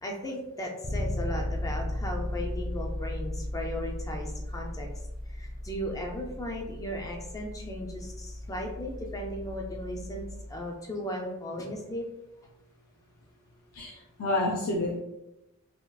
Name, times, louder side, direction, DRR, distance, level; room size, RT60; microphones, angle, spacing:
voice 1, 0.0-4.9 5.3-12.1, equal, 15° left, 0 dB, 0.4 m, -36 dB
Bass guitar, 0.8-10.7, left 1 dB, 40° left, 0.7 m, -36 dB
voice 2, 13.7-15.0, left 2 dB, 90° left, -2 dB, 0.5 m, -29 dB
3.5 x 2.4 x 2.2 m, 0.92 s
head